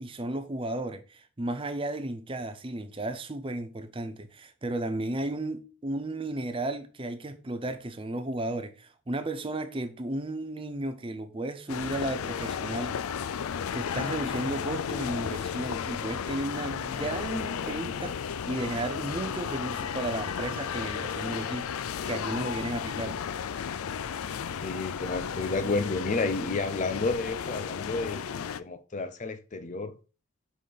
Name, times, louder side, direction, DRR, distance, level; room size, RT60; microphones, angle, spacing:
voice 1, 0.0-13.2 13.7-21.7 22.0-23.2, right 2 dB, 25° right, 0.6 m, -34 dB
sound 1, 11.7-28.6, left 7 dB, 85° left, 0.4 m, -34 dB
voice 2, 24.6-29.9, left 3 dB, 35° left, 0.5 m, -31 dB
6.0 x 4.9 x 3.9 m
head